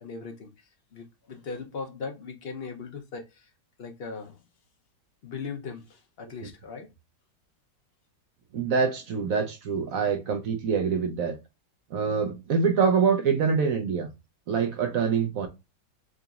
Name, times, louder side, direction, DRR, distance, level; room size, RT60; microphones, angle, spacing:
voice 1, 0.0-3.5 3.8-4.4 5.2-6.9, left 5 dB, 55° left, 0.6 m, -39 dB
voice 2, 8.5-11.4 11.9-14.1 14.5-15.5, right 6 dB, 65° right, 0.9 m, -25 dB
3.9 x 3.8 x 2.3 m
omnidirectional pair, 1.9 m